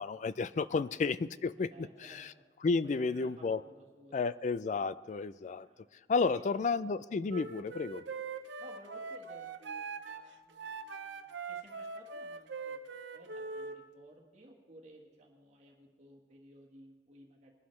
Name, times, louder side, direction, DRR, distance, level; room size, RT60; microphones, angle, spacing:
voice 1, 0.0-1.7 2.0-2.3 2.6-3.6 4.1-5.7 6.1-8.0, left 4 dB, 45° left, 17 dB, 0.3 m, -32 dB
voice 2, 1.7-2.5 2.8-4.2 5.6-5.9 6.2-6.7 7.3-7.5 8.6-12.8 13.1-17.5, right 1 dB, 40° right, -1 dB, 1.5 m, -57 dB
Wind instrument woodwind instrument, 7.3-13.8, right 4 dB, 90° right, 0.8 m, -42 dB
21.0 x 11.5 x 3.2 m, 1.5 s
head